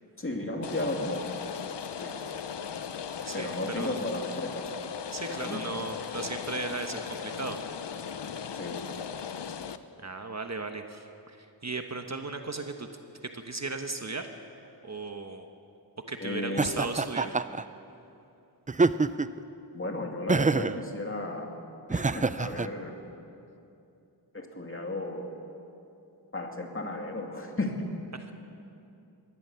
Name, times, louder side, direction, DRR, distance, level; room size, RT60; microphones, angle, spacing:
voice 1, 0.2-1.4 2.0-2.1 3.3-4.7 5.3-5.6 8.5-8.8 16.2-16.7 19.7-21.5 21.9-23.0 24.3-25.3 26.3-27.8, left 2 dB, 30° left, 2 dB, 2.4 m, -34 dB
Rain, 0.6-9.8, left 7 dB, 70° left, 0.9 m, -37 dB
voice 2, 5.1-7.6 10.0-12.9 13.3-14.3 14.8-15.5 16.1-17.4 28.1-28.3, right 3 dB, 40° right, 6 dB, 1.2 m, -36 dB
Laughter, 16.6-17.6 18.7-19.4 20.3-20.8 21.9-22.7, right 3 dB, 20° right, 0.4 m, -26 dB
22.0 x 17.0 x 7.0 m, 2.7 s
wide cardioid pair, 100°, 43 cm